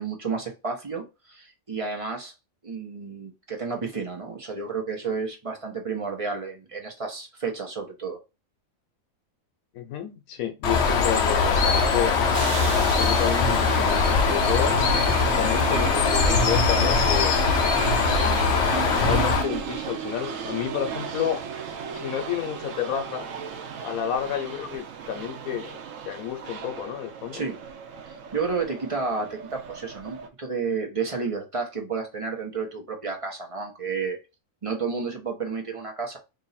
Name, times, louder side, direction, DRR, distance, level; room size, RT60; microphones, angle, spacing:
voice 1, 0.0-2.3 2.6-8.2 27.3-27.6 28.1-34.2 34.6-36.2, right 4 dB, 25° right, 1.0 m, -31 dB
voice 2, 9.7-12.1 12.8-14.7 15.3-17.3 18.2-21.4 21.9-23.3 23.8-25.8 26.0-27.5, left 10 dB, 85° left, 1.2 m, -30 dB
Bird, 10.6-19.4, left 4 dB, 60° left, 0.9 m, -21 dB
sound 1, 12.0-30.3, right 8 dB, 70° right, 1.0 m, -35 dB
3.1 x 2.7 x 4.0 m
omnidirectional pair, 1.4 m